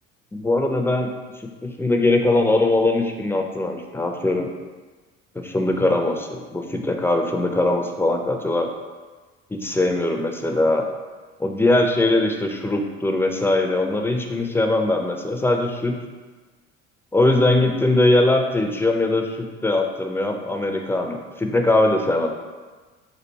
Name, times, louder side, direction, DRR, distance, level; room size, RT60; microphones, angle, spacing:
voice 1, 0.3-1.1 1.4-4.5 5.3-8.7 9.5-10.9 11.4-16.0 17.1-22.3, left 2 dB, 5° left, 3 dB, 0.4 m, -21 dB
4.1 x 2.5 x 4.5 m, 1.3 s
hypercardioid pair, 60°, 37 cm